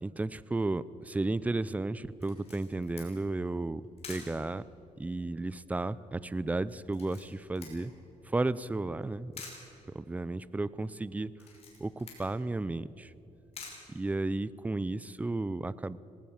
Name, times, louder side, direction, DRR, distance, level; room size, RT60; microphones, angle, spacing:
voice 1, 0.0-4.7 5.0-7.9 8.2-9.3 9.9-11.4 11.8-13.1 13.9-16.0, right 2 dB, 10° right, 18 dB, 0.5 m, -33 dB
Camera, 2.2-14.7, left 4 dB, 50° left, 5.7 m, -52 dB
19.0 x 19.0 x 7.2 m, 2.8 s
cardioid pair, 110°, 13 cm